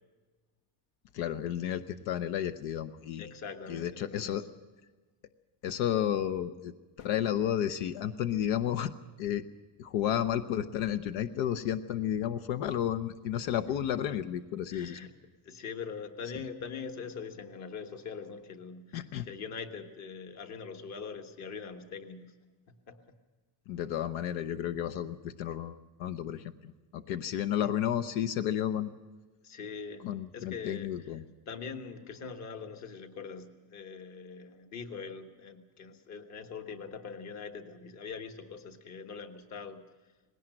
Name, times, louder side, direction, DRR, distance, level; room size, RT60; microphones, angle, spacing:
voice 1, 1.1-3.3 3.7-4.4 5.6-8.9 9.2-9.4 9.8-15.1 18.9-19.3 23.7-29.0 30.0-31.2, left 10 dB, 75° left, 12 dB, 0.9 m, -32 dB
voice 2, 3.2-4.4 14.7-15.1 15.4-22.3 22.7-23.0 26.1-26.2 29.4-30.1 30.3-31.2 31.5-39.8, left 5 dB, 35° left, 7 dB, 1.4 m, -42 dB
19.5 x 17.5 x 7.7 m, 1.3 s
cardioid pair, 180°, 47 cm